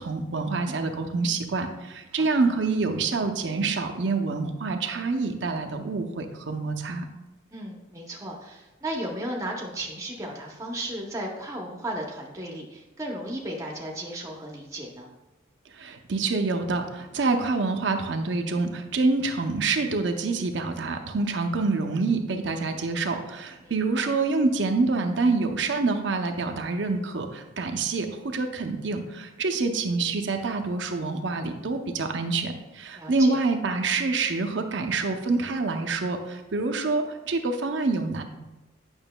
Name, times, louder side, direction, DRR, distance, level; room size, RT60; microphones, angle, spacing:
voice 1, 0.0-7.0 15.7-38.2, right 3 dB, 65° right, 5 dB, 0.6 m, -26 dB
voice 2, 7.5-15.1 23.6-24.1 32.9-33.4, right 1 dB, 15° right, 0 dB, 0.7 m, -35 dB
8.8 x 6.0 x 2.2 m, 1.0 s
head